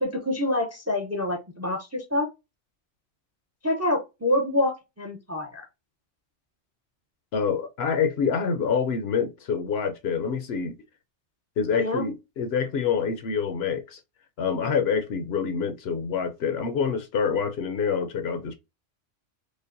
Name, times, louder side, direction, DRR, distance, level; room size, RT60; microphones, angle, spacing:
voice 1, 0.0-2.3 3.6-5.7 11.7-12.0, left 1 dB, 20° right, 0.4 m, -26 dB
voice 2, 7.3-10.8 11.6-14.0 14.4-18.5, left 6 dB, 65° left, 0.7 m, -26 dB
5.0 x 2.2 x 2.5 m
omnidirectional pair, 1.2 m